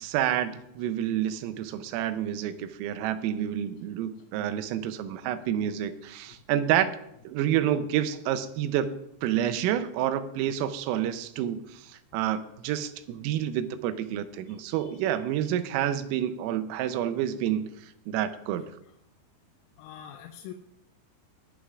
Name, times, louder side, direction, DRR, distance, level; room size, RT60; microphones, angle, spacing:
voice 1, 0.0-6.9 7.2-9.0 9.2-18.6, right 11 dB, 90° right, 10 dB, 3.4 m, -29 dB
voice 2, 14.5-15.2 19.8-20.5, left 10 dB, 90° left, 4 dB, 3.4 m, -46 dB
22.0 x 11.5 x 2.5 m, 0.78 s
omnidirectional pair, 5.8 m